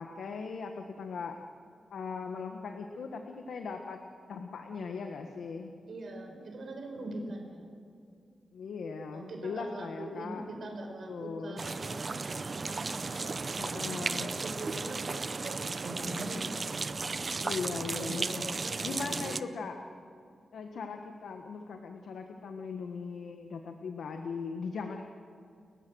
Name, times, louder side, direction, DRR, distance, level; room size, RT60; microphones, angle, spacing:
voice 1, 0.0-1.3 1.9-4.0 4.3-5.7 8.5-10.5 11.1-11.6 13.6-14.4 17.4-18.6 18.8-19.8 20.5-25.0, left 5 dB, 80° left, 4 dB, 1.5 m, -39 dB
voice 2, 5.9-7.7 9.1-15.0 15.4-17.4 18.0-19.7, right 2 dB, 55° right, 2 dB, 5.0 m, -43 dB
sound 1, 11.6-19.4, right 4 dB, 35° right, 0.6 m, -35 dB
29.5 x 15.0 x 6.4 m, 2.4 s
wide cardioid pair, 150°, 0 cm